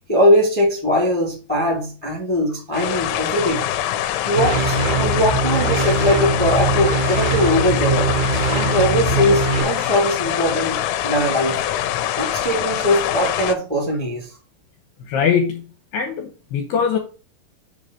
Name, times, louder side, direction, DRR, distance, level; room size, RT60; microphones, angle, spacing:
voice 1, 0.1-3.7 4.2-8.1 8.5-11.6 12.2-14.3, equal, 5° left, 0 dB, 1.3 m, -20 dB
sound 1, 2.7-13.5, left 12 dB, 90° left, 3.0 m, -24 dB
sound 2, 4.3-9.6, right 3 dB, 75° right, 1.8 m, -22 dB
voice 2, 15.0-15.6 15.9-17.0, left 7 dB, 75° left, 3 dB, 2.8 m, -21 dB
7.0 x 4.0 x 6.5 m, 0.36 s
omnidirectional pair, 5.2 m